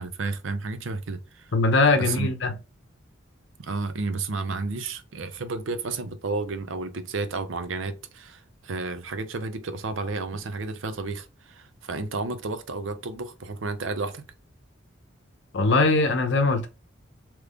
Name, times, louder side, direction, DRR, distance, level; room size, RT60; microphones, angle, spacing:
voice 1, 0.0-1.5 2.0-2.3 3.6-14.2, right 3 dB, 80° right, 0.6 m, -32 dB
voice 2, 1.5-2.5 15.5-16.7, left 3 dB, 65° left, 0.7 m, -21 dB
3.4 x 3.0 x 2.4 m
head